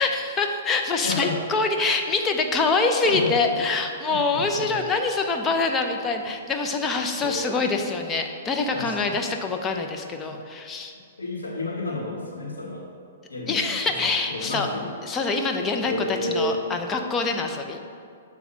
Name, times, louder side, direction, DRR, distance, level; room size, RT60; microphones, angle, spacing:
voice 1, 0.0-10.9 13.5-14.7 15.0-17.8, left 3 dB, 20° left, 4 dB, 0.6 m, -25 dB
voice 2, 1.0-1.4 3.0-3.4 4.1-4.8 7.2-7.5 8.7-9.2 10.3-10.4 11.2-12.8 13.3-14.0 14.3-14.9 15.8-16.5, left 2 dB, 85° left, -2 dB, 1.6 m, -31 dB
7.0 x 3.5 x 5.5 m, 2.3 s
hypercardioid pair, 120°, 0 cm